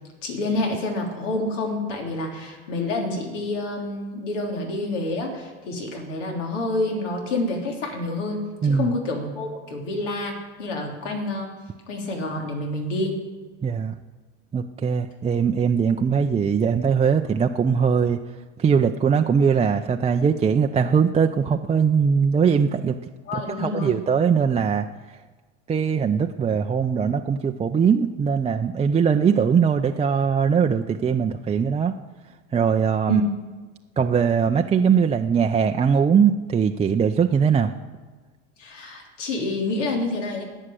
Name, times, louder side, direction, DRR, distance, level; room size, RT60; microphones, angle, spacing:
voice 1, 0.2-10.3 10.6-11.5 11.9-13.1 23.2-24.0 33.1-33.2 38.6-40.4, left 2 dB, 80° left, 1 dB, 3.3 m, -28 dB
voice 2, 8.6-8.9 13.6-13.9 14.5-18.2 18.6-23.0 23.3-24.9 25.7-31.9 32.5-33.2 34.0-37.7, right 6 dB, 20° right, 4 dB, 0.5 m, -21 dB
19.0 x 6.5 x 7.7 m, 1.3 s
hypercardioid pair, 95°, 36 cm